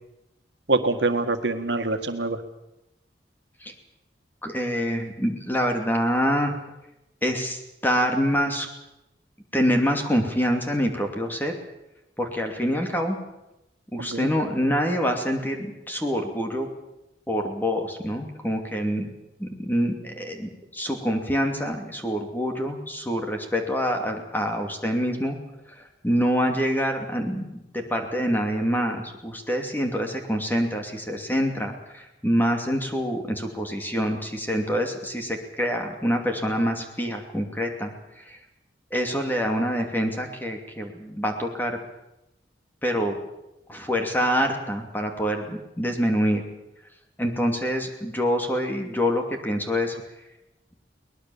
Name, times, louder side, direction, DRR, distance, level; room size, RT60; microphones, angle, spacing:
voice 1, 0.7-2.4 14.0-14.3, right 3 dB, 80° right, 7 dB, 1.8 m, -25 dB
voice 2, 4.4-6.5 7.2-8.7 9.5-11.6 12.2-13.2 13.9-16.7 17.3-19.1 19.4-25.4 25.7-38.4 38.9-41.8 42.8-43.2 43.7-46.4 47.2-49.9, equal, 10° left, 3 dB, 2.7 m, -26 dB
22.5 x 19.5 x 7.2 m, 0.91 s
head